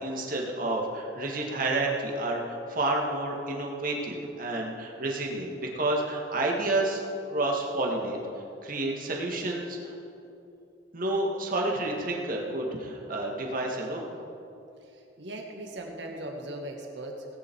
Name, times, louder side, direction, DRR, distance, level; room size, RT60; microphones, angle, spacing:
voice 1, 0.0-7.0 7.3-8.2 8.6-10.0 10.9-14.1, right 2 dB, 50° right, -1 dB, 2.0 m, -30 dB
voice 2, 14.8-17.3, right 1 dB, 75° right, 1 dB, 2.1 m, -39 dB
18.5 x 9.9 x 4.7 m, 2.8 s
head